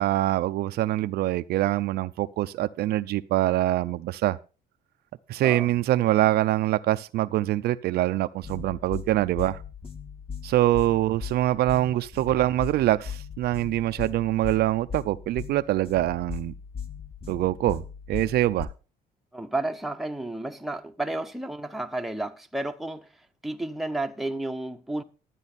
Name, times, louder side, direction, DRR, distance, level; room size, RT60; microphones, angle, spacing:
voice 1, 0.0-4.4 5.3-9.6 10.4-16.5 17.3-18.7, right 15 dB, 70° right, 0.5 m, -24 dB
sound 1, 8.4-18.6, left 6 dB, 35° left, 1.7 m, -39 dB
voice 2, 19.3-23.1 23.4-25.0, right 2 dB, ahead, 0.9 m, -32 dB
12.5 x 9.1 x 4.2 m
cardioid pair, 110°, 17 cm